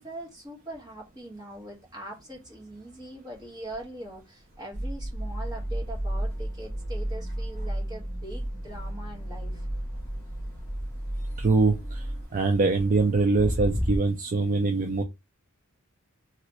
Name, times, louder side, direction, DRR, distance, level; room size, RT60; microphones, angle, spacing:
voice 1, 0.0-9.7, right 1 dB, 20° right, 1.3 m, -42 dB
sound 1, 0.8-1.9 2.3-14.0, equal, 10° left, 0.8 m, -40 dB
sound 2, 4.7-12.3, right 1 dB, 30° left, 1.6 m, -33 dB
voice 2, 11.4-12.0 12.3-15.0, right 3 dB, 40° right, 0.4 m, -23 dB
3.0 x 2.9 x 2.9 m
head